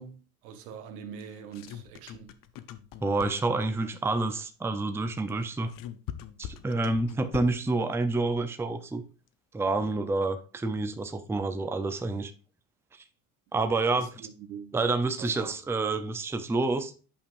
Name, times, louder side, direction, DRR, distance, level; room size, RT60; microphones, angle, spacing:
voice 1, 0.0-2.4 13.9-14.7 15.2-15.5, right 7 dB, 85° right, 1.1 m, -44 dB
sound 1, 1.2-3.6 5.3-7.7, left 11 dB, 50° left, 0.7 m, -42 dB
voice 2, 3.0-5.7 6.4-9.0 9.5-12.3 12.9-13.0 13.5-14.2 14.7-16.9, right 3 dB, 5° right, 0.5 m, -28 dB
8.7 x 5.2 x 2.5 m
supercardioid pair, 85°, 43 cm